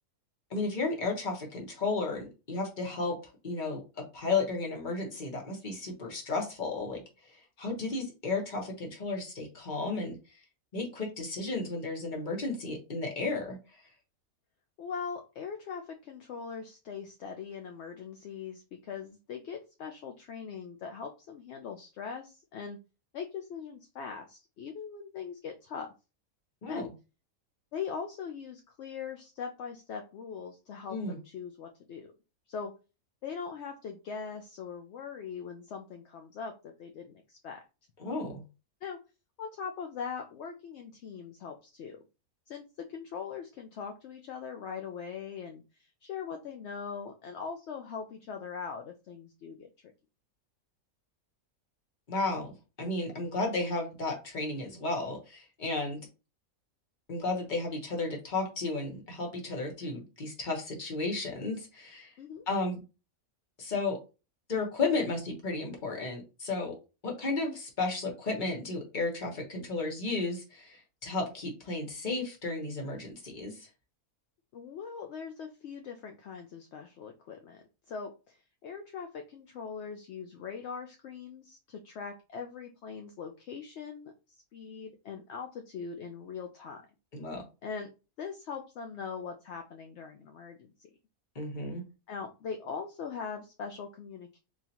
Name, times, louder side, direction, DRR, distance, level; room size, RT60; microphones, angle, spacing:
voice 1, 0.5-3.2 3.4-7.0 7.6-10.2 10.7-13.6 26.6-26.9 30.9-31.2 38.0-38.4 52.1-56.0 57.1-62.1 62.5-62.8 63.6-64.0 64.5-66.7 67.0-73.7 87.1-87.5 91.3-91.8, left 3 dB, 35° left, 0 dB, 1.2 m, -33 dB
voice 2, 14.8-22.8 23.1-25.9 26.7-26.9 27.7-32.1 32.5-32.7 33.2-37.6 38.8-39.0 39.4-42.0 42.5-42.6 42.9-49.7 62.2-62.5 74.5-86.8 87.6-87.9 88.2-90.9 92.1-94.4, left 6 dB, 65° left, 4 dB, 0.7 m, -41 dB
3.9 x 3.0 x 2.8 m, 0.30 s
omnidirectional pair, 1.5 m